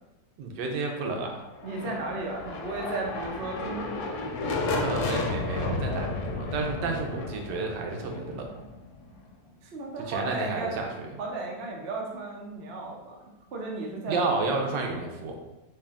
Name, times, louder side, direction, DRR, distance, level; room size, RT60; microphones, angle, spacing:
voice 1, 0.4-1.3 4.7-8.5 10.1-11.1 14.1-15.3, right 3 dB, 85° right, 2 dB, 1.3 m, -31 dB
sound 1, 1.5-9.3, left 3 dB, 80° left, 1.2 m, -32 dB
voice 2, 1.6-4.2 9.6-10.8 11.2-13.2 13.5-14.3, right 3 dB, 60° right, -1 dB, 0.6 m, -34 dB
3.3 x 2.8 x 3.5 m, 0.98 s
omnidirectional pair, 1.9 m